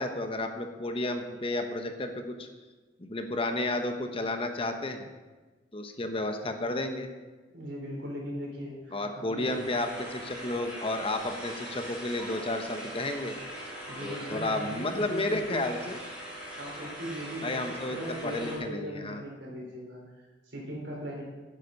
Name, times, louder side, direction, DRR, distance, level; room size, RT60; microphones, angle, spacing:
voice 1, 0.0-2.5 3.0-5.1 5.7-7.1 8.9-13.4 14.0-16.0 17.4-18.0 18.2-19.2, left 2 dB, 30° left, 6 dB, 1.0 m, -32 dB
voice 2, 7.5-9.5 13.9-15.7 16.6-21.2, equal, 75° right, -2 dB, 4.3 m, -39 dB
sound 1, 9.4-18.6, equal, 5° right, 4.0 m, -41 dB
11.5 x 9.9 x 5.3 m, 1.3 s
head